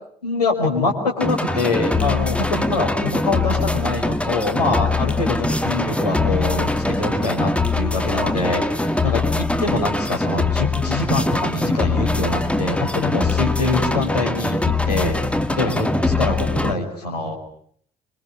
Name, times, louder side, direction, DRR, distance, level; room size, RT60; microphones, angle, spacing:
voice 1, 0.2-17.4, left 3 dB, 85° left, 0 dB, 5.7 m, -24 dB
sound 1, 1.2-16.7, left 2 dB, 5° left, 2.2 m, -22 dB
27.5 x 24.5 x 8.4 m, 0.64 s
figure-of-eight pair, 45°, 20 cm